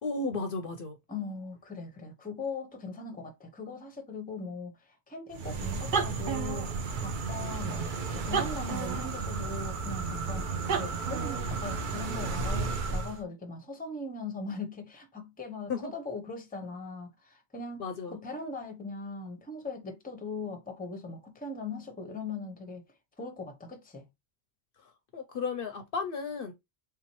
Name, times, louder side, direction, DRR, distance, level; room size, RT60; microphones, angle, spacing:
voice 1, 0.0-1.0 15.7-15.9 17.8-18.2 24.8-26.5, left 4 dB, 60° left, 0.7 m, -34 dB
voice 2, 1.1-22.8 23.2-24.1, left 3 dB, 10° left, 0.6 m, -40 dB
sound 1, 5.3-13.2, right 4 dB, 55° right, 0.7 m, -32 dB
3.5 x 2.8 x 3.0 m
omnidirectional pair, 1.2 m